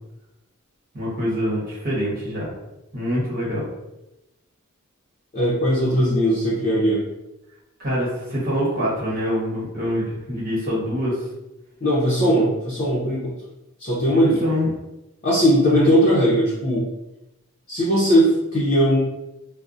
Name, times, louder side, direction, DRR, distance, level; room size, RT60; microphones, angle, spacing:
voice 1, 0.9-2.5 2.9-3.7 7.8-11.2 14.1-14.7 15.7-15.9, equal, 45° right, -6 dB, 1.1 m, -25 dB
voice 2, 5.3-7.0 11.8-13.3 13.8-14.4 15.2-16.9 17.7-19.0, equal, 40° left, -7 dB, 0.6 m, -19 dB
2.5 x 2.0 x 2.4 m, 0.93 s
head